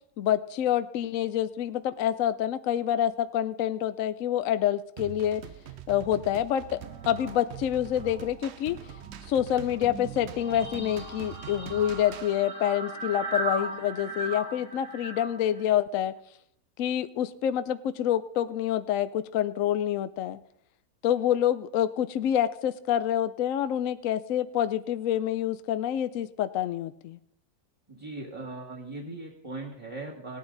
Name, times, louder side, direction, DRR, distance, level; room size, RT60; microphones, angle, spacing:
voice 1, 0.2-5.4 5.9-6.8 7.1-8.8 9.3-16.1 16.8-20.4 21.0-27.2, left 11 dB, 70° left, 12 dB, 0.8 m, -27 dB
sound 1, 5.0-12.4, right 10 dB, 80° right, 0.6 m, -43 dB
sound 2, 6.7-8.4 8.7-15.7, right 2 dB, 60° right, 2.7 m, -38 dB
voice 2, 27.9-30.4, right 2 dB, 15° right, -3 dB, 1.6 m, -39 dB
17.5 x 9.6 x 3.9 m, 0.73 s
omnidirectional pair, 1.9 m